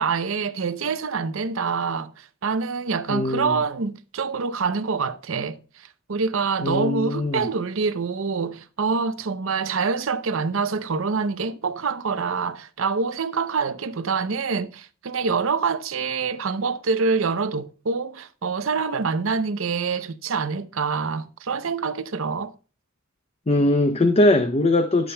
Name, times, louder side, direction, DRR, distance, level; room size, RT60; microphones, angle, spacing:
voice 1, 0.0-22.5, right 5 dB, 75° right, 0.6 m, -26 dB
voice 2, 3.1-3.6 6.6-7.5 23.5-25.1, left 2 dB, 30° left, 0.6 m, -21 dB
17.5 x 7.1 x 2.2 m
head